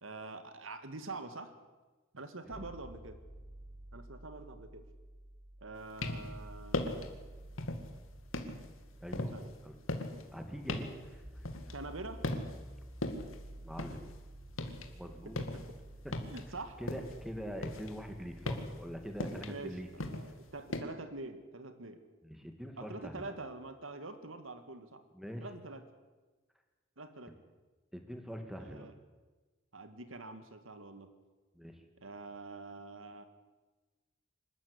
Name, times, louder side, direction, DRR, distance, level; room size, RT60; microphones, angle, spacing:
voice 1, 0.0-1.5 2.1-3.2 3.9-4.8 5.6-6.9 9.3-9.5 11.7-12.2 15.2-15.8 16.3-16.8 19.4-19.8 20.1-22.0 22.8-25.0 25.4-25.9 27.0-27.4 28.6-28.9 29.7-31.1 32.0-33.2, right 2 dB, 80° right, 9 dB, 2.0 m, -45 dB
sound 1, 2.5-20.5, right 1 dB, 25° right, 5.3 m, -52 dB
sound 2, 5.8-6.4 6.7-7.2 7.6-8.0 8.3-12.0 12.2-12.7 13.0-14.9 15.2-17.2 17.6-20.8, left 2 dB, 80° left, 2.3 m, -38 dB
voice 2, 9.0-9.3 9.6-9.8 10.3-11.4 13.6-14.0 14.9-15.4 16.0-16.1 16.8-19.9 22.2-23.3 25.1-25.5 27.9-28.9 31.6-31.8, equal, ahead, 5 dB, 2.3 m, -43 dB
25.5 x 13.5 x 9.8 m, 1.3 s
head